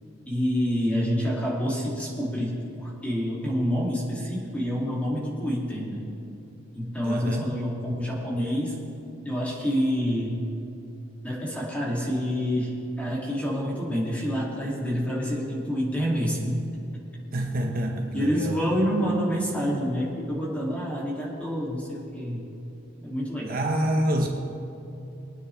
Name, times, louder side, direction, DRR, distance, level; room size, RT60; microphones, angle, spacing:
voice 1, 0.3-6.1 6.7-8.8 9.2-10.4 11.2-16.6 18.1-22.4 23.0-23.6, equal, 5° left, -5 dB, 2.8 m, -27 dB
voice 2, 7.0-7.6 17.3-18.6 23.5-24.3, right 1 dB, 50° right, 2 dB, 1.0 m, -27 dB
23.0 x 9.3 x 3.5 m, 2.8 s
head